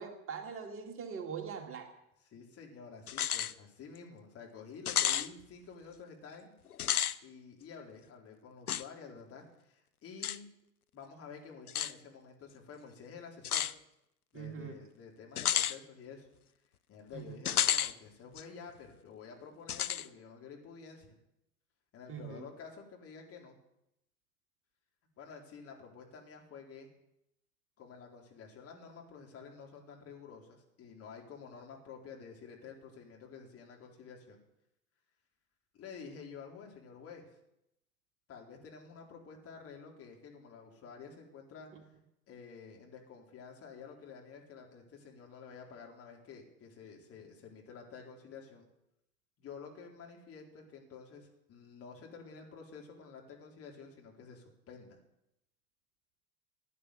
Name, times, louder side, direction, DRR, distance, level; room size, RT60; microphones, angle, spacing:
voice 1, 0.0-1.9 14.3-14.8 17.1-17.3 22.1-22.4, right 6 dB, 30° right, 4 dB, 2.3 m, -42 dB
voice 2, 2.2-6.5 7.2-10.5 10.9-13.7 14.3-16.3 16.9-21.1 21.9-23.6 25.2-26.9 27.8-34.4 35.7-37.3 38.3-41.7 42.3-48.7 49.4-55.0, left 5 dB, 30° left, 0 dB, 4.0 m, -50 dB
sound 1, 3.1-3.5 3.9-4.0 4.9-5.3 6.7-7.2 8.7-8.8 10.2-10.4 11.7-11.9 13.4-13.7 15.4-15.8 17.4-17.9 18.4-18.5 19.7-20.1, left 10 dB, 80° left, 0.7 m, -31 dB
16.0 x 10.0 x 8.0 m, 0.83 s
figure-of-eight pair, 80°, 44 cm